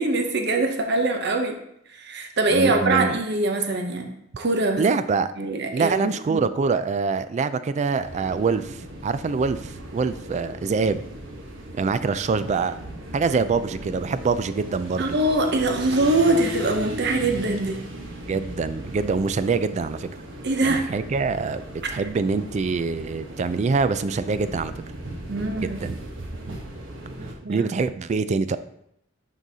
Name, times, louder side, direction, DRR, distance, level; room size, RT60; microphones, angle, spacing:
voice 1, 0.0-1.6 1.9-4.9 5.4-6.4 15.0-17.8 20.4-20.9 25.3-25.8 27.4-27.7, right 2 dB, 60° right, 5 dB, 0.7 m, -23 dB
voice 2, 2.5-3.2 4.8-5.3 5.7-11.0 11.7-12.8 13.1-15.2 18.3-20.1 20.6-21.6 21.9-24.7 25.6-26.0 27.5-28.6, right 4 dB, 40° right, 13 dB, 0.3 m, -25 dB
sound 1, 8.0-27.3, right 1 dB, 90° right, 1.1 m, -37 dB
11.0 x 3.9 x 2.7 m, 0.75 s
head